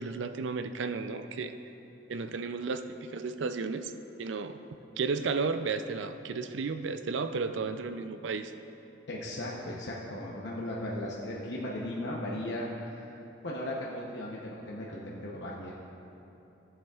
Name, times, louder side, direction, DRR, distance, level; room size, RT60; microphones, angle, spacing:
voice 1, 0.0-1.5 2.1-3.9 4.2-4.6 5.0-8.5, right 4 dB, 85° right, 9 dB, 0.4 m, -33 dB
voice 2, 9.1-13.1 13.4-15.7, left 1 dB, 70° left, -4 dB, 0.8 m, -37 dB
15.5 x 7.4 x 2.4 m, 2.9 s
head